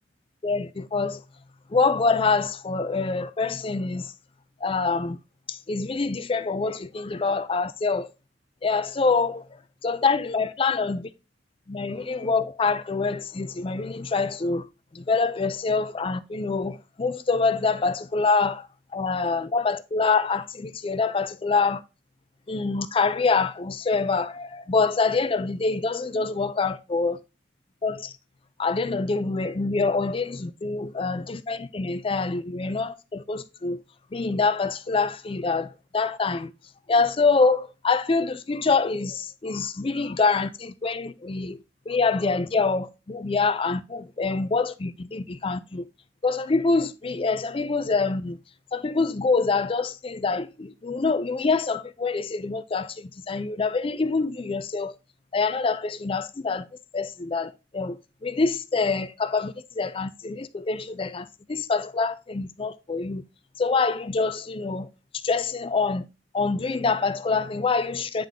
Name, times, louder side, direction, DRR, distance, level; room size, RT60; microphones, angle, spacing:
voice 1, 0.4-1.2 1.7-4.1 4.6-5.2 5.5-8.1 8.6-9.4 9.8-11.1 11.7-14.6 15.0-18.6 18.9-21.8 22.5-27.2 27.8-28.1 28.6-33.8 34.1-35.7 35.9-36.5 36.9-41.6 41.9-45.8 46.2-48.4 48.7-52.9 53.3-54.9 55.3-56.6 56.9-58.0 58.2-63.2 63.6-64.9 65.2-66.0 66.3-68.3, left 4 dB, 30° left, 0.4 m, -25 dB
9.1 x 3.5 x 3.6 m
head